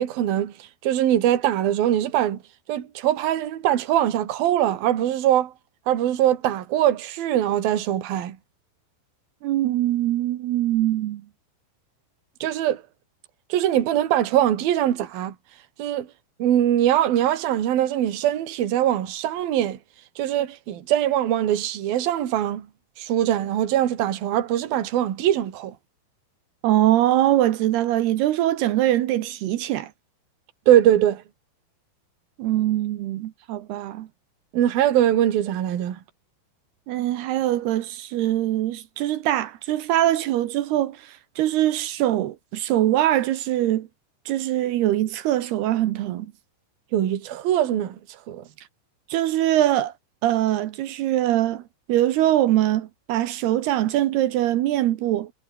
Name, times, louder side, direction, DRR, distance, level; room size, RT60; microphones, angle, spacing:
voice 1, 0.0-2.4 2.7-5.5 5.9-8.4 12.4-12.8 13.5-15.3 15.8-16.1 16.4-19.8 20.2-22.7 23.0-25.7 30.7-31.2 34.5-36.0 46.9-48.0 48.3-48.4, right 11 dB, 55° right, 3.6 m, -22 dB
voice 2, 9.4-11.2 26.6-29.9 32.4-34.1 36.9-43.9 44.3-46.3 49.1-49.9 50.2-51.6 51.9-55.3, right 13 dB, 70° right, 2.6 m, -22 dB
omnidirectional pair, 5.9 m